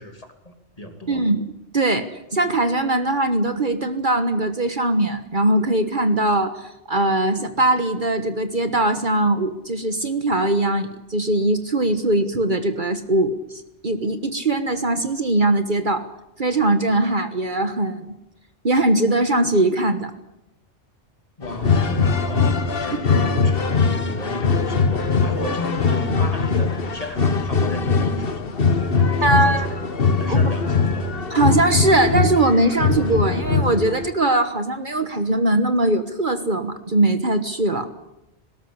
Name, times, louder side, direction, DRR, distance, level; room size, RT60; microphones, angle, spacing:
voice 1, 0.0-1.2 21.4-28.7 28.9-29.9 30.2-31.1, left 1 dB, 30° left, 5 dB, 3.0 m, -34 dB
voice 2, 1.1-1.4 1.7-2.1 2.3-16.1 16.4-18.1 18.6-20.1 22.9-23.2 29.2-29.7 30.3-30.4 31.3-37.9, right 2 dB, 45° right, 9 dB, 1.5 m, -21 dB
sound 1, 21.4-34.1, left 4 dB, 55° left, 1.5 m, -21 dB
19.5 x 18.0 x 9.8 m, 0.87 s
omnidirectional pair, 1.2 m